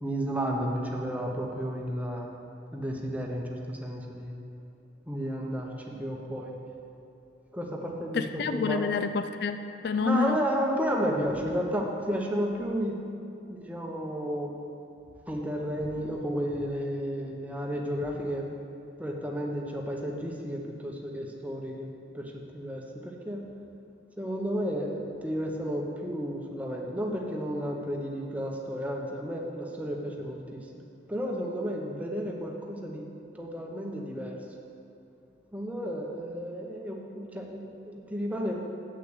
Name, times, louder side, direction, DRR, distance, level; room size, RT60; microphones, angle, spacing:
voice 1, 0.0-2.3 2.7-4.4 5.1-6.5 7.5-8.9 10.0-13.0 13.5-14.5 15.3-18.4 19.0-23.5 24.2-30.8 31.1-33.1 33.3-34.4 35.5-38.6, equal, 10° right, 0 dB, 0.9 m, -32 dB
voice 2, 8.1-10.4, left 5 dB, 55° left, 9 dB, 0.3 m, -28 dB
7.8 x 6.4 x 8.0 m, 2.6 s
head